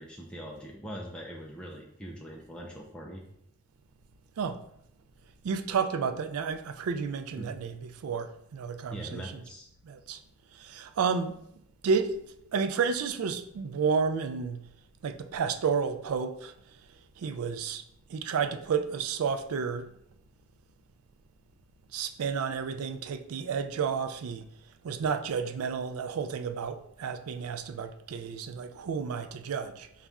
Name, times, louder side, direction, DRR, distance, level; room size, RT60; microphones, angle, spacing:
voice 1, 0.0-3.2 7.4-7.5 8.9-9.7, equal, 5° left, 0.4 m, -42 dB
voice 2, 5.4-9.3 9.9-10.2 10.6-11.4 11.8-12.1 12.5-14.6 15.0-16.5 17.2-17.8 18.1-19.8 21.9-24.5 24.8-29.9, right 6 dB, 85° right, 0.4 m, -31 dB
4.0 x 2.4 x 3.4 m
head